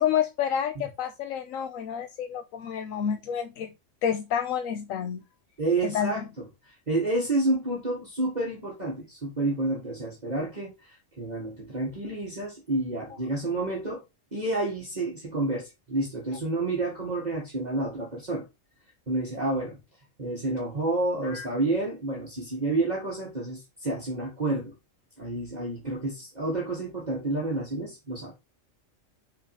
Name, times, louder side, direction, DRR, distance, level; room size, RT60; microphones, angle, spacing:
voice 1, 0.0-3.7 4.0-5.2 5.8-6.2 21.2-21.4, left 8 dB, 90° left, 1.1 m, -29 dB
voice 2, 5.6-6.2 6.9-14.0 14.3-18.4 19.1-19.8 20.2-24.7 25.2-28.4, right 2 dB, 35° right, 1.8 m, -29 dB
5.8 x 4.3 x 5.7 m
omnidirectional pair, 1.4 m